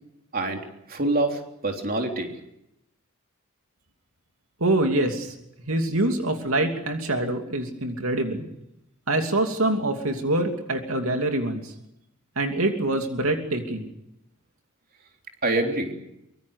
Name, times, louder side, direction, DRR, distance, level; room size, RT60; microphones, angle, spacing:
voice 1, 0.3-2.3 15.4-15.9, right 2 dB, 45° right, 3 dB, 3.5 m, -26 dB
voice 2, 4.6-5.3 5.7-8.5 9.1-11.7 12.4-13.9, right 1 dB, 80° right, 4 dB, 2.8 m, -25 dB
24.5 x 23.5 x 6.6 m, 0.83 s
head